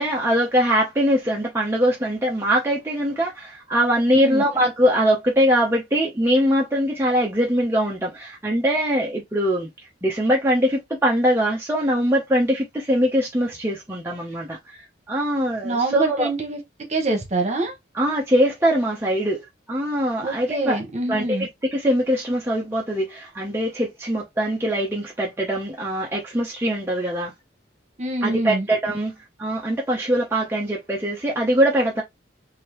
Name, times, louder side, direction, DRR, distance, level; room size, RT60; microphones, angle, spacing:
voice 1, 0.0-9.7 10.0-16.3 17.9-20.8 21.1-27.3 28.2-29.1 29.4-32.0, equal, 15° right, 0.8 m, -22 dB
voice 2, 4.1-4.4 15.6-16.6 16.9-17.7 20.2-21.5 28.0-28.7, right 2 dB, 40° right, 1.2 m, -25 dB
3.7 x 2.8 x 3.0 m
head